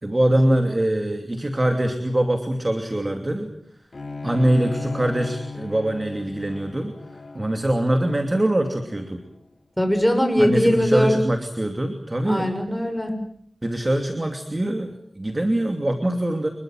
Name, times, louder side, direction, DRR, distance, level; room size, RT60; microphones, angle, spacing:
voice 1, 0.0-3.5 4.2-6.9 7.3-9.2 10.4-12.5 13.6-16.5, right 1 dB, 30° right, 5 dB, 2.8 m, -23 dB
Bowed string instrument, 3.9-9.2, left 4 dB, 60° left, 4.8 m, -36 dB
voice 2, 9.8-11.1 12.2-13.1, equal, 5° left, 6 dB, 6.6 m, -20 dB
26.5 x 22.5 x 7.8 m, 0.68 s
wide cardioid pair, 70°, 0 cm